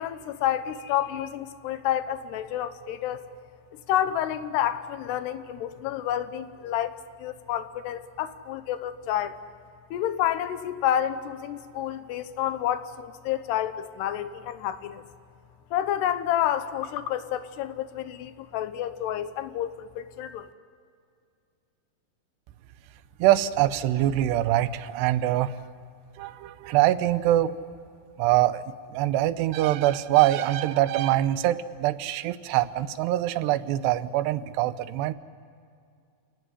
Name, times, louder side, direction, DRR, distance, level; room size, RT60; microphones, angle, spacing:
voice 1, 0.0-3.2 3.9-9.4 9.9-15.0 15.7-20.5, left 11 dB, 80° left, 11 dB, 3.1 m, -29 dB
voice 2, 23.2-25.5 26.2-27.6 28.2-35.1, right 14 dB, 85° right, 14 dB, 3.0 m, -24 dB
28.5 x 18.0 x 9.8 m, 2.4 s
omnidirectional pair, 4.8 m